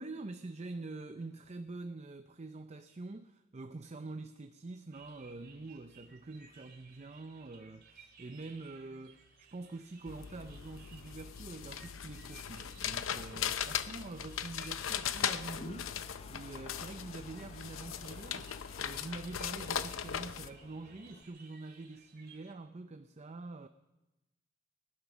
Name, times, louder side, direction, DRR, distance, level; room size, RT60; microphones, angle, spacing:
voice 1, 0.0-23.7, right 3 dB, 35° right, 0.6 m, -46 dB
sound 1, 4.9-22.5, right 5 dB, 50° right, 2.5 m, -60 dB
sound 2, 10.1-20.5, left 8 dB, 75° left, 0.6 m, -39 dB
Toilet flush, 15.1-21.2, left 3 dB, 30° left, 0.5 m, -54 dB
20.0 x 11.0 x 6.2 m
head